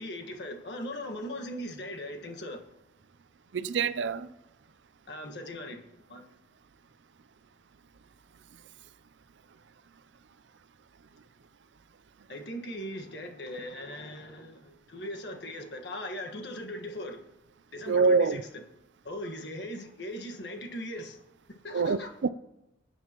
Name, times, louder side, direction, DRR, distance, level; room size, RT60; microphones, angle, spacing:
voice 1, 0.0-2.6 5.1-6.3 12.3-17.2 17.7-18.6 19.0-21.2 21.5-22.1, left 1 dB, 60° left, 1.5 m, -39 dB
voice 2, 3.5-4.3 17.9-18.4 21.7-22.3, right 4 dB, 70° right, 0.5 m, -25 dB
22.5 x 9.2 x 3.0 m
head